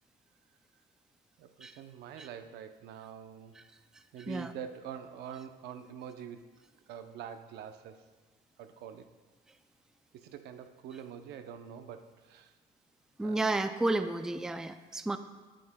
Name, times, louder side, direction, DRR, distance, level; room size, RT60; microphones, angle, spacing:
voice 1, 1.4-3.6 4.1-6.5 6.9-8.0 8.6-9.1 10.1-12.6 13.2-13.6, right 8 dB, 80° right, 8 dB, 0.7 m, -45 dB
voice 2, 13.2-15.2, right 2 dB, 5° right, 9 dB, 0.3 m, -31 dB
20.0 x 7.6 x 2.2 m, 1.3 s
cardioid pair, 110°, 17 cm